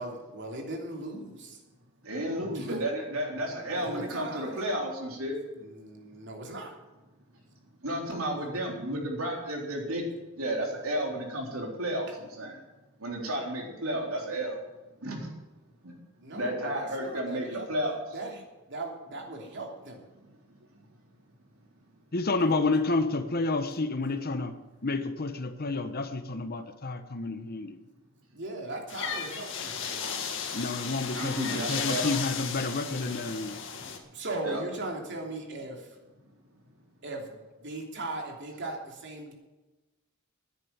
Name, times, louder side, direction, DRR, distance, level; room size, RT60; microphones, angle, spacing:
voice 1, 0.0-1.6 2.5-2.8 3.4-4.6 5.5-6.7 16.2-17.7 18.1-20.0 28.3-30.3 31.1-31.8 33.8-35.9 37.0-39.3, right 2 dB, 55° right, 3.1 m, -39 dB
voice 2, 2.0-5.4 7.8-10.1 10.4-12.6 13.0-14.6 15.0-15.3 15.8-15.9 16.3-18.0 20.2-20.6 31.2-32.1 34.4-34.6, right 1 dB, 75° right, 3.8 m, -32 dB
voice 3, 22.1-24.5 24.8-27.8 30.5-33.6, left 3 dB, 45° left, 1.0 m, -30 dB
sound 1, 28.9-34.0, left 6 dB, 60° left, 2.0 m, -35 dB
10.0 x 10.0 x 8.9 m
head